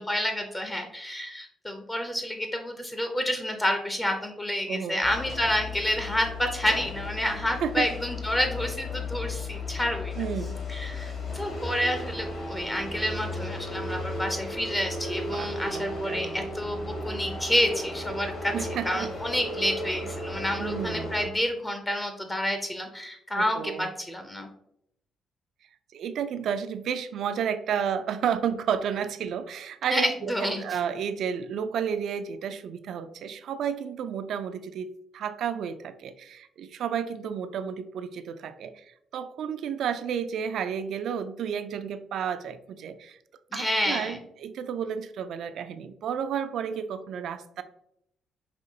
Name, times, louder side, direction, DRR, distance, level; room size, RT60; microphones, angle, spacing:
voice 1, 0.0-10.2 10.7-24.5 29.9-30.6 43.5-44.2, equal, 20° left, 5 dB, 0.6 m, -29 dB
voice 2, 4.7-5.0 7.6-7.9 10.2-10.6 15.3-16.3 18.5-19.1 20.6-21.1 23.4-23.9 25.9-43.2 43.5-47.6, right 8 dB, 70° right, 11 dB, 0.3 m, -32 dB
sound 1, 5.0-21.3, left 2 dB, 50° left, 1.5 m, -35 dB
5.3 x 2.8 x 2.7 m, 0.76 s
cardioid pair, 90°, 0 cm